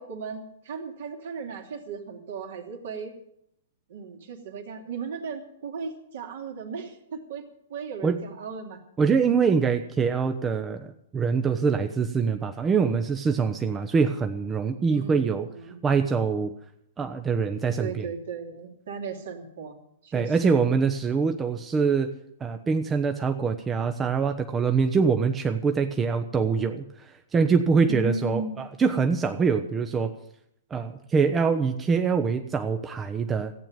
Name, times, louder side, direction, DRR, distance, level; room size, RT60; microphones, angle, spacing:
voice 1, 0.0-3.2 3.9-7.4 7.7-8.8 14.9-15.8 17.8-19.8 20.0-20.6 27.9-28.7, right 5 dB, 60° right, 4 dB, 2.7 m, -36 dB
voice 2, 9.0-15.5 15.8-16.5 17.0-18.0 20.1-22.1 22.4-30.2 30.7-33.5, right 5 dB, 15° right, 7 dB, 0.9 m, -24 dB
15.0 x 8.8 x 9.1 m, 0.74 s
figure-of-eight pair, 110°, 0 cm